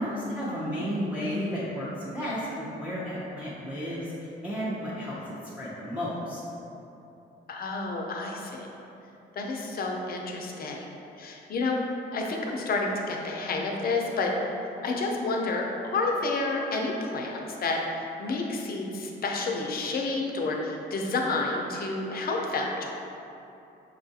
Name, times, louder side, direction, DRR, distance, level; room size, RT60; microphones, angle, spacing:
voice 1, 0.0-4.1 4.4-5.1 5.6-6.4, equal, 5° right, -10 dB, 0.7 m, -32 dB
voice 2, 7.5-8.7 9.4-10.9 11.2-11.8 12.1-14.3 14.8-22.8, left 3 dB, 50° left, 0 dB, 0.6 m, -30 dB
5.3 x 2.4 x 2.7 m, 2.9 s
cardioid pair, 90°, 20 cm